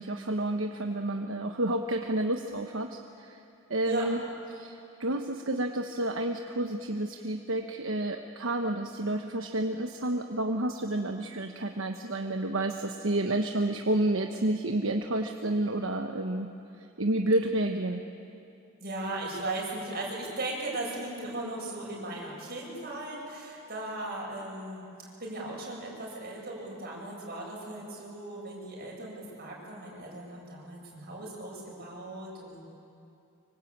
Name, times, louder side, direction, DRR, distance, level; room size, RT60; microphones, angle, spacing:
voice 1, 0.0-3.4 3.7-4.2 4.5-16.5 17.0-18.0, right 1 dB, 75° right, 4 dB, 1.2 m, -30 dB
voice 2, 18.8-32.6, right 2 dB, 50° right, -3 dB, 7.9 m, -37 dB
25.5 x 24.0 x 8.7 m, 2.6 s
head